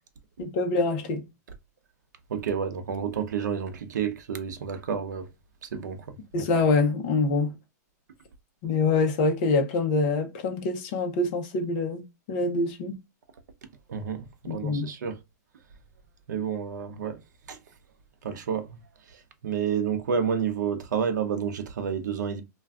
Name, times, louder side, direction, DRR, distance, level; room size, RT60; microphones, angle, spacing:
voice 1, 0.4-1.2 6.3-7.5 8.6-12.0 12.3-13.0 14.4-14.9, left 3 dB, 30° left, 0.6 m, -25 dB
voice 2, 2.3-5.3 5.7-6.0 13.9-15.2 16.3-17.2 17.5-17.6 18.2-18.7 19.4-22.4, right 7 dB, 90° right, 0.6 m, -29 dB
2.4 x 2.2 x 3.4 m
supercardioid pair, 175°, 9 cm